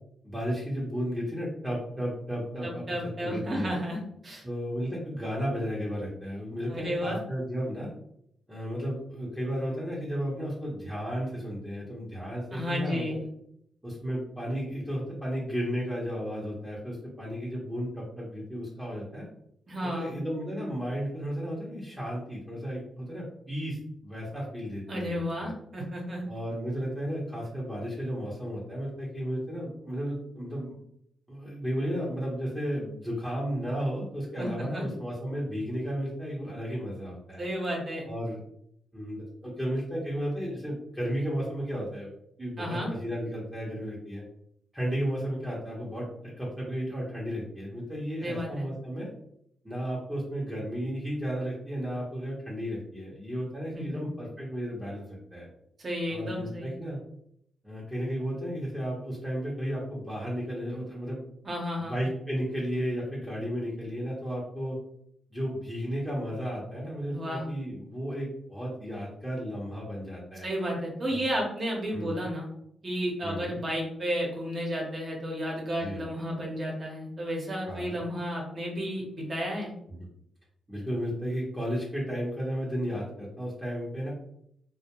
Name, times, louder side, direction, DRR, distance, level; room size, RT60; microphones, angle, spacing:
voice 1, 0.2-2.8 3.2-3.7 4.4-7.9 8.5-13.2 13.8-19.3 19.8-23.8 24.0-25.5 26.3-30.7 31.3-37.4 38.1-38.4 38.9-42.1 42.4-44.2 44.7-46.1 46.4-49.1 49.6-55.5 56.1-57.0 57.6-61.2 61.8-64.8 65.3-70.5 71.1-71.2 71.9-72.2 73.2-73.6 75.8-76.1 77.7-78.0 79.9-80.1 80.7-84.1, equal, 10° right, -6 dB, 0.9 m, -33 dB
voice 2, 2.6-4.4 6.7-7.2 12.5-13.3 19.7-20.1 24.9-26.2 34.4-34.9 37.4-38.0 42.6-42.9 48.2-48.7 53.7-54.0 55.8-56.8 61.4-62.0 67.1-67.4 70.4-72.5 72.8-79.7, equal, 40° right, -2 dB, 1.0 m, -32 dB
2.2 x 2.1 x 2.9 m, 0.71 s
cardioid pair, 65°, 0 cm